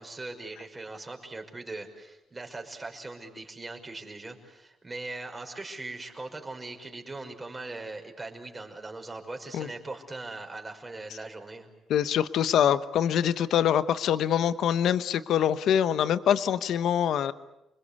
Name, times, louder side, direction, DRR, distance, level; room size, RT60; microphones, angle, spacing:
voice 1, 0.0-11.7, right 2 dB, 20° right, 3 dB, 5.5 m, -40 dB
voice 2, 11.9-17.3, left 9 dB, 75° left, 13 dB, 1.0 m, -24 dB
29.5 x 21.5 x 8.4 m, 0.90 s
cardioid pair, 90°, 0 cm